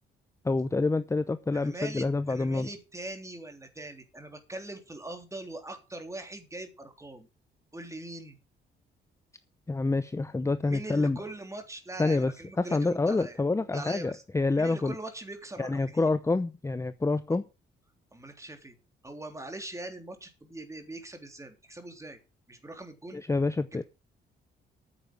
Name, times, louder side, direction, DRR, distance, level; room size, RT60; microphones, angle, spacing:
voice 1, 0.4-2.7 9.7-11.2 12.0-14.9 15.6-17.4 23.1-23.8, left 3 dB, 15° left, 0.7 m, -27 dB
voice 2, 1.5-7.3 7.7-8.4 10.7-13.4 13.7-14.2 14.6-16.0 18.1-18.7 19.0-22.2 22.5-23.2, right 2 dB, 15° right, 3.3 m, -42 dB
9.6 x 7.7 x 7.8 m
cardioid pair, 90°, 20 cm